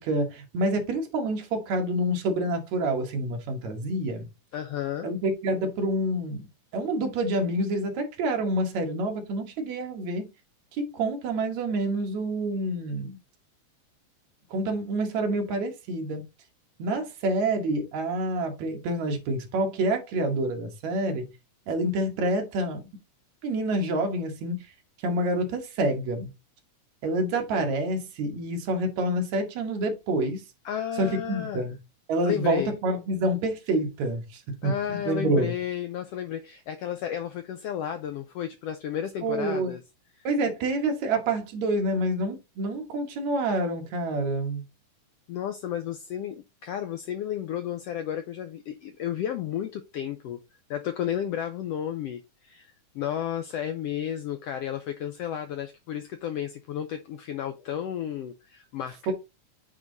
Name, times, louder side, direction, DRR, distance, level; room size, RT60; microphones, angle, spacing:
voice 1, 0.0-4.3 5.0-6.5 6.7-10.3 10.8-13.2 14.5-16.2 16.8-21.3 21.7-22.9 23.4-24.6 25.0-26.3 27.0-30.4 31.0-31.8 32.1-35.5 39.2-39.8 40.2-44.7 59.1-59.2, right 1 dB, 65° right, 2.6 m, -27 dB
voice 2, 4.5-5.1 30.6-31.6 32.2-32.7 34.6-39.8 40.2-40.3 45.3-50.4 50.7-59.1, left 10 dB, 85° left, 1.3 m, -32 dB
8.4 x 3.7 x 3.9 m
omnidirectional pair, 3.5 m